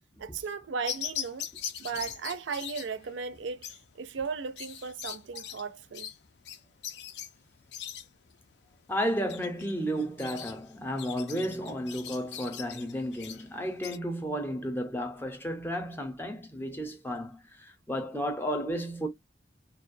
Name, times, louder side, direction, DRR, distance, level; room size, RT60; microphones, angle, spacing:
voice 1, 0.2-1.5 1.8-6.1, right 5 dB, 80° right, 0.4 m, -36 dB
sound 1, 0.9-14.0, left 9 dB, 65° left, 0.4 m, -41 dB
voice 2, 8.9-19.1, equal, 10° left, 0.5 m, -33 dB
2.3 x 2.1 x 2.5 m
head